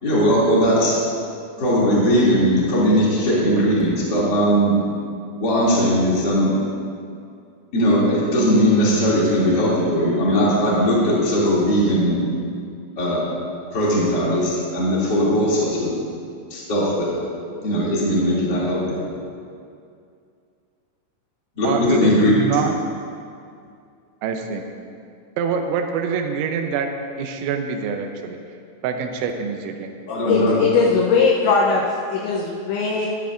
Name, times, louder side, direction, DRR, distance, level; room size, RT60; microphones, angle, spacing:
voice 1, 0.0-1.0 1.6-4.8 5.4-6.5 7.7-12.2 13.0-13.2 13.7-15.9 16.5-17.2 17.6-19.0 21.6-22.3 30.1-30.5, equal, 30° left, -7 dB, 2.0 m, -19 dB
voice 2, 21.6-22.7 24.2-24.6 25.4-26.9 27.2-28.4 28.8-29.9, right 6 dB, 80° right, 5 dB, 2.9 m, -25 dB
voice 3, 30.3-33.1, left 5 dB, 80° left, -2 dB, 2.9 m, -19 dB
13.5 x 12.0 x 2.5 m, 2.4 s
omnidirectional pair, 5.8 m